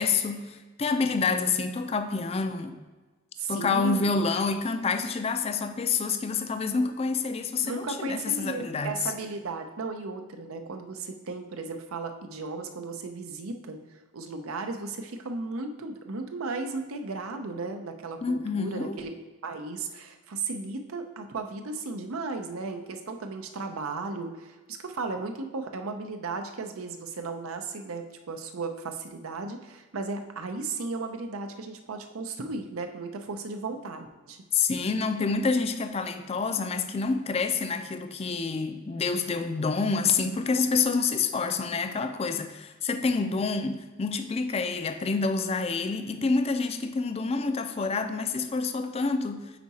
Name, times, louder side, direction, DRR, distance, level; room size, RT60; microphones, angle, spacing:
voice 1, 0.0-2.8 3.5-9.1 18.2-19.0 34.5-49.5, left 4 dB, 30° left, 8 dB, 0.4 m, -28 dB
voice 2, 3.4-4.1 7.6-19.1 19.4-34.4, right 3 dB, 85° right, 6 dB, 0.6 m, -35 dB
5.0 x 4.6 x 4.1 m, 1.3 s
head